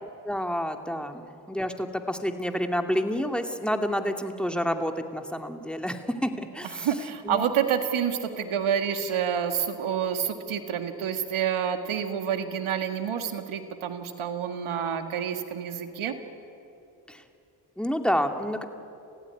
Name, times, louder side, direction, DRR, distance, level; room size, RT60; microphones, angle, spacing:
voice 1, 0.0-6.9 7.2-7.4 17.1-17.2 17.8-18.6, equal, ahead, 6 dB, 2.4 m, -29 dB
voice 2, 6.8-16.2, right 8 dB, 75° right, 7 dB, 2.0 m, -28 dB
27.5 x 15.5 x 9.8 m, 2.7 s
supercardioid pair, 40°, 49 cm